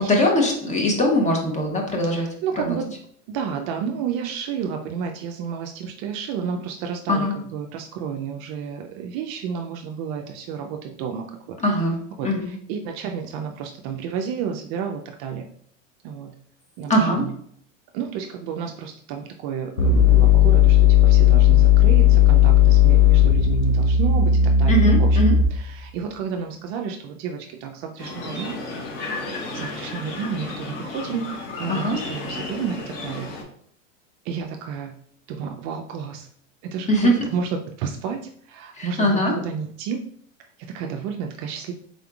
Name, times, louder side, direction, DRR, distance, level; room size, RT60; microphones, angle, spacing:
voice 1, 0.0-2.3 2.5-2.8 7.1-7.3 11.6-12.0 12.2-12.5 16.9-17.3 24.7-25.3 31.7-32.0 36.9-37.1 38.7-39.3, equal, 20° left, 1 dB, 0.9 m, -21 dB
voice 2, 2.1-2.9 3.3-7.3 7.5-11.6 12.2-15.4 16.0-16.4 16.8-17.3 17.9-25.2 25.5-28.6 29.5-33.3 34.2-35.0 35.3-36.3 36.6-40.0 40.6-41.7, right 7 dB, 45° right, 4 dB, 0.4 m, -31 dB
sound 1, 19.8-25.7, left 8 dB, 90° left, 0.8 m, -15 dB
sound 2, 28.0-33.4, left 3 dB, 60° left, 1.1 m, -33 dB
3.8 x 3.5 x 2.3 m, 0.63 s
hypercardioid pair, 110°, 39 cm